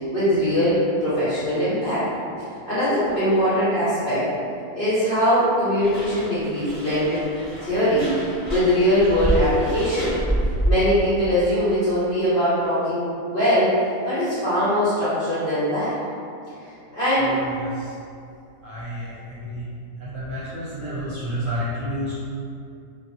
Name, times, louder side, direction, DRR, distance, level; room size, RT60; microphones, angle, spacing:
voice 1, 0.1-2.0 2.7-4.3 4.7-7.3 7.6-8.1 8.5-10.1 10.7-13.7 14.0-15.9 16.9-17.4, equal, 50° left, -13 dB, 0.7 m, -21 dB
sound 1, 5.8-11.0, right 1 dB, 15° right, 0.7 m, -27 dB
voice 2, 17.2-17.9 18.6-19.7 20.0-22.1, equal, 65° right, -10 dB, 0.9 m, -30 dB
2.5 x 2.5 x 2.6 m, 2.5 s
omnidirectional pair, 1.7 m